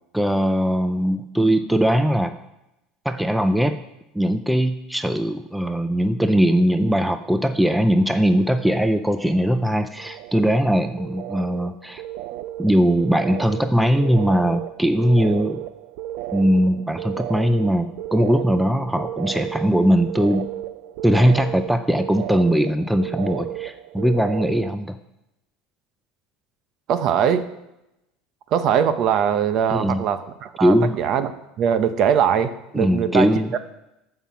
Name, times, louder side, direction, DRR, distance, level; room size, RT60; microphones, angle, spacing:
voice 1, 0.1-2.4 3.0-3.8 4.1-12.0 12.6-15.6 16.3-20.5 21.0-25.0 29.7-30.0 30.6-30.9 32.7-33.5, equal, ahead, 9 dB, 0.4 m, -20 dB
sound 1, 7.1-7.7 8.0-8.7 9.0-24.8, right 13 dB, 65° right, 0.4 m, -34 dB
voice 2, 26.9-27.5 28.5-31.3 31.6-33.6, right 8 dB, 45° right, 11 dB, 0.8 m, -21 dB
14.5 x 5.8 x 5.7 m, 0.92 s
cardioid pair, 150°, 0 cm